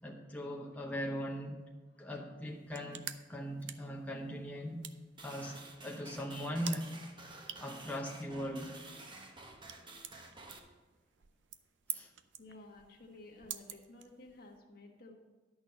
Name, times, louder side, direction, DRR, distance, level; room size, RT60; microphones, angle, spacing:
voice 1, 0.0-1.6 2.0-4.8 5.2-6.9 7.6-8.8 11.9-12.1, equal, 10° left, -1 dB, 0.8 m, -40 dB
sound 1, 2.5-14.6, right 11 dB, 70° right, 0.6 m, -49 dB
sound 2, 5.2-10.6, right 2 dB, 25° right, 1.0 m, -52 dB
voice 2, 12.4-15.1, left 2 dB, 55° left, 2 dB, 1.4 m, -54 dB
11.0 x 6.4 x 5.4 m, 1.3 s
head